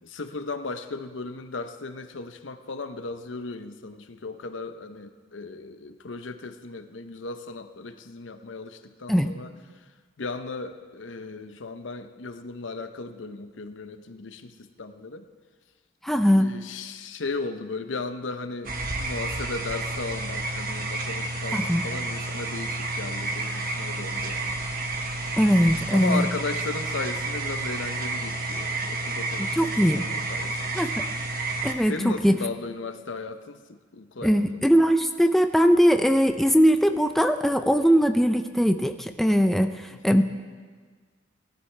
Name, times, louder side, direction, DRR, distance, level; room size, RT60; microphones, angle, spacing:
voice 1, 0.0-9.8 10.2-15.2 16.4-18.7 19.0-24.6 25.9-30.7 31.9-34.6 39.9-40.2, left 3 dB, 70° left, 8 dB, 0.7 m, -36 dB
voice 2, 16.0-16.5 21.5-21.8 25.4-26.3 29.4-30.0 30.7-30.9 31.6-32.4 34.2-40.2, equal, ahead, 7 dB, 0.4 m, -21 dB
sound 1, 18.6-31.7, right 2 dB, 50° right, 1.2 m, -30 dB
19.0 x 12.5 x 3.3 m, 1.5 s
head